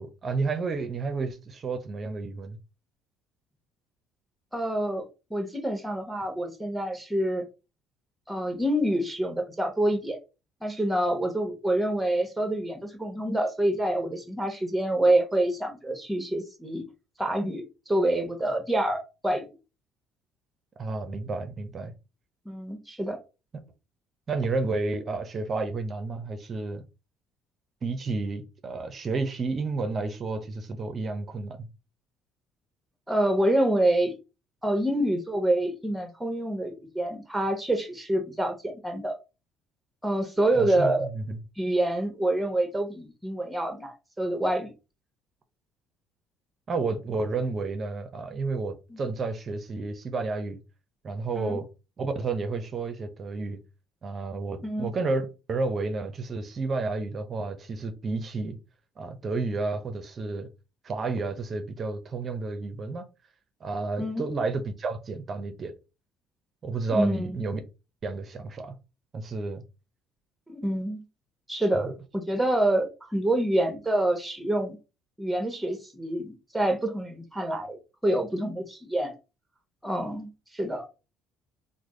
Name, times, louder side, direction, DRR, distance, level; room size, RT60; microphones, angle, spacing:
voice 1, 0.0-2.6 20.8-21.9 24.3-26.8 27.8-31.7 40.5-41.4 46.7-50.6 51.0-51.7 52.0-53.6 54.0-58.6 59.0-60.5 60.8-63.1 63.6-65.7 66.6-67.6 68.0-68.7 69.1-69.6 71.7-71.9, right 3 dB, 40° right, 0.5 m, -31 dB
voice 2, 4.5-7.4 8.3-10.2 10.6-16.8 17.2-19.5 22.4-23.2 33.1-34.2 34.6-39.2 40.0-41.1 41.6-44.7 48.9-49.0 51.4-51.6 54.6-54.9 64.0-64.2 66.9-67.4 70.5-71.0 71.5-74.8 75.2-79.1 79.8-80.9, right 1 dB, 10° right, 1.0 m, -27 dB
3.2 x 2.0 x 3.8 m
supercardioid pair, 85°, 0 cm